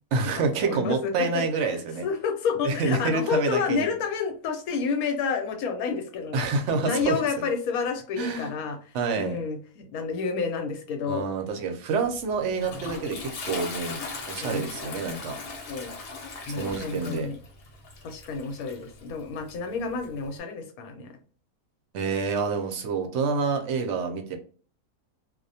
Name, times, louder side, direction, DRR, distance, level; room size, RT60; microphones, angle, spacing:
voice 1, 0.1-2.0 2.6-3.9 6.3-7.2 8.1-8.5 8.9-9.4 11.1-14.0 14.3-15.4 16.6-17.3 21.9-24.4, right 4 dB, 65° right, 4 dB, 0.7 m, -27 dB
voice 2, 0.6-1.3 1.7-6.5 6.8-8.8 9.2-11.3 14.4-14.7 15.7-15.9 16.5-17.4 18.0-21.1, left 5 dB, 90° left, 5 dB, 1.1 m, -29 dB
Toilet flush, 12.1-20.4, left 3 dB, 60° left, 0.9 m, -39 dB
2.3 x 2.1 x 2.6 m, 0.42 s
omnidirectional pair, 1.5 m